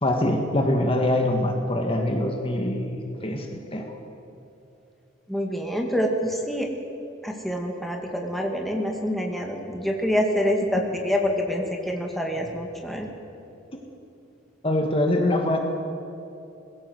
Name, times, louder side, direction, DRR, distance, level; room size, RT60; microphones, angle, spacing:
voice 1, 0.0-4.0 14.6-15.6, left 1 dB, 30° left, 3 dB, 1.8 m, -24 dB
voice 2, 5.3-6.7 7.2-13.1, equal, ahead, 1 dB, 2.1 m, -26 dB
21.5 x 16.5 x 7.9 m, 2.9 s
head